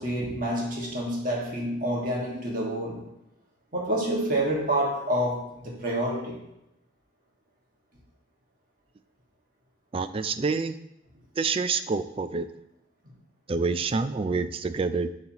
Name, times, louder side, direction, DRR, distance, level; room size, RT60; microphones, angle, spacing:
voice 1, 0.0-3.0 3.7-6.4, right 1 dB, 45° right, -3 dB, 1.8 m, -28 dB
voice 2, 9.9-10.8 11.4-12.5 13.5-15.1, right 4 dB, 30° right, 11 dB, 0.3 m, -27 dB
11.5 x 4.0 x 2.9 m, 0.87 s
head